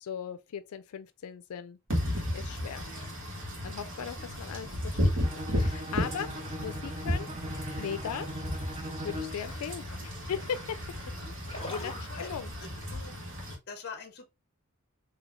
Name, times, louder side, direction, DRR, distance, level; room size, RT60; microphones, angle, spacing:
voice 1, 0.0-1.8 2.3-2.9 3.6-7.3 7.8-8.3 9.0-10.8 11.7-11.9 12.2-12.5, left 7 dB, 90° left, 0.4 m, -38 dB
Wind / Rain, 1.9-13.5, left 1 dB, 60° right, 1.5 m, -34 dB
Bowed string instrument, 5.2-9.5, equal, 30° right, 0.5 m, -40 dB
sound 1, 7.8-12.9, left 1 dB, 25° left, 1.6 m, -48 dB
voice 2, 11.6-12.3 12.6-13.1 13.7-14.3, left 4 dB, 50° left, 0.7 m, -46 dB
4.1 x 2.7 x 3.0 m
head